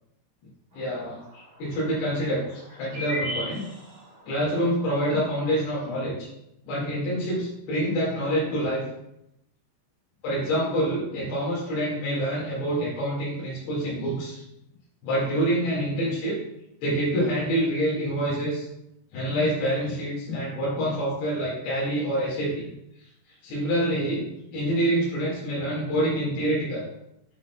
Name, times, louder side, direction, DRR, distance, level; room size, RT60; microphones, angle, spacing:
voice 1, 0.7-3.7 4.3-6.3 6.6-8.8 10.2-14.4 15.0-16.4 16.8-18.7 19.1-22.7 23.4-24.2 24.5-26.8, right 1 dB, 85° left, -7 dB, 4.2 m, -26 dB
sound 1, 0.8-0.9 1.1-1.2 2.6-4.2 4.7-4.8 5.1-5.6, equal, 45° right, 3.2 m, -34 dB
9.3 x 6.0 x 2.4 m, 0.81 s
omnidirectional pair, 4.6 m